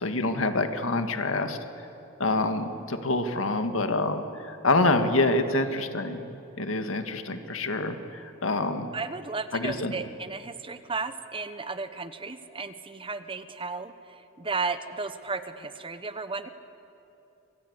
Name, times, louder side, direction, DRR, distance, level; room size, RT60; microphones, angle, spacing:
voice 1, 0.0-1.6 2.2-6.2 6.6-8.9 9.5-9.9, left 2 dB, 75° left, 7 dB, 1.9 m, -26 dB
voice 2, 8.9-16.5, right 4 dB, 25° right, 11 dB, 1.0 m, -34 dB
26.5 x 25.0 x 8.1 m, 2.8 s
head